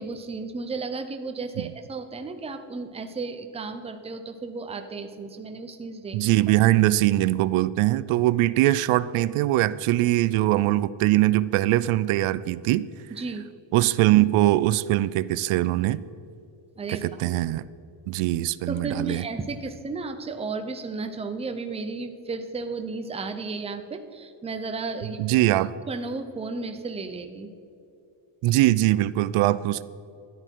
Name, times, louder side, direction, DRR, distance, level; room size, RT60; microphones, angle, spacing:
voice 1, 0.0-6.2 13.1-13.5 16.8-17.3 18.7-25.5 25.9-27.5, right 3 dB, 15° right, 7 dB, 0.6 m, -34 dB
voice 2, 6.1-12.9 13.7-16.0 16.9-17.6 18.1-19.2 25.2-25.7 28.4-29.8, right 15 dB, 80° right, 17 dB, 0.6 m, -22 dB
13.5 x 11.0 x 4.6 m, 2.6 s
cardioid pair, 170°, 49 cm